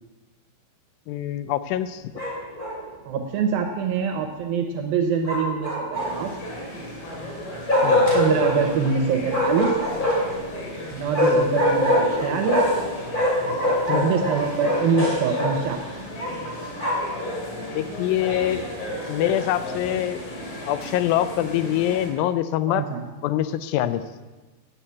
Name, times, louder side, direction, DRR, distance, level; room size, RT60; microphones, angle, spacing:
voice 1, 1.1-2.0 7.8-8.1 11.2-11.6 13.9-14.1 17.8-18.6 19.1-20.2 20.7-22.8 23.2-24.0, left 12 dB, 85° left, 13 dB, 2.1 m, -24 dB
Bark, 2.1-2.8 5.2-6.3 7.7-8.6 9.3-10.4 11.1-12.8 13.1-15.5 16.2-17.1, left 1 dB, 15° left, 2.4 m, -23 dB
voice 2, 3.1-6.3 8.1-9.7 10.9-12.7 13.4-15.8 22.7-23.1, right 6 dB, 75° right, 4 dB, 2.4 m, -25 dB
sound 1, 5.9-22.1, left 1 dB, 60° left, 4.0 m, -35 dB
8.9 x 8.8 x 8.3 m, 1.2 s
omnidirectional pair, 4.7 m